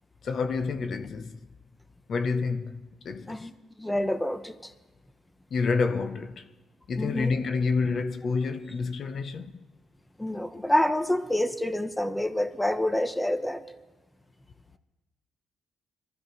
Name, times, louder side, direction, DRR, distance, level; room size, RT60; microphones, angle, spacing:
voice 1, 0.2-1.4 2.1-3.4 5.5-6.5 6.9-9.6, left 4 dB, 60° left, 0.8 m, -28 dB
voice 2, 3.8-4.7 7.0-7.3 10.2-13.6, left 1 dB, 10° left, 0.9 m, -27 dB
23.0 x 13.5 x 3.1 m
cardioid pair, 85°, 0 cm